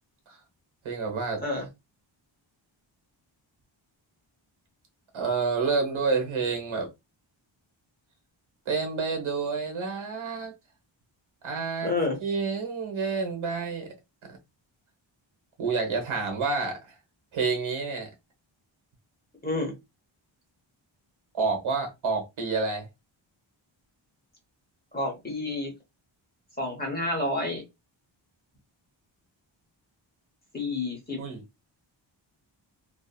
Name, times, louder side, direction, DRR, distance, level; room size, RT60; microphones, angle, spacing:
voice 1, 0.8-1.4 5.1-6.9 8.7-10.5 11.4-13.9 15.6-17.0 17.3-18.1 21.3-22.9 31.2-31.4, right 4 dB, 80° right, 1.1 m, -29 dB
voice 2, 11.8-12.2 19.4-19.7 24.9-25.7 26.6-27.6 30.5-31.2, left 2 dB, 20° left, 0.9 m, -29 dB
2.7 x 2.5 x 2.3 m
wide cardioid pair, 170°, 47 cm